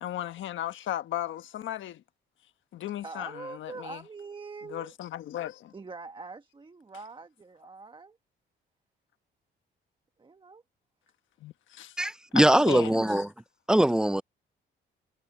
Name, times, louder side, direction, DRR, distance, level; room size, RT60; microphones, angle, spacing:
voice 1, 0.0-2.0 2.7-4.0 4.7-5.7 11.4-12.0 12.3-13.2, left 12 dB, 75° left, 1.3 m, -36 dB
voice 2, 3.0-4.9 5.7-8.2 10.2-10.6, right 4 dB, 25° right, 1.4 m, -43 dB
voice 3, 12.0-13.3 13.7-14.2, right 1 dB, 5° right, 0.4 m, -22 dB
cardioid pair, 90°, 20 cm